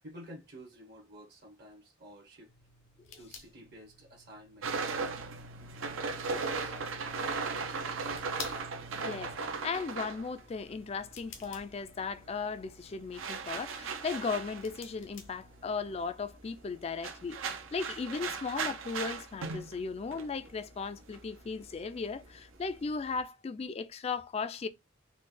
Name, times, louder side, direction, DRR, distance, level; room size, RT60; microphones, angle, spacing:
voice 1, 0.0-2.5 3.2-4.9, equal, 55° right, 0.9 m, -51 dB
sound 1, 2.5-16.0, left 5 dB, 80° left, 0.7 m, -53 dB
sound 2, 4.6-11.3 11.6-23.2, right 4 dB, 85° right, 0.7 m, -38 dB
voice 2, 9.0-9.3 9.6-24.7, left 5 dB, 30° left, 0.3 m, -36 dB
4.0 x 2.2 x 3.2 m
head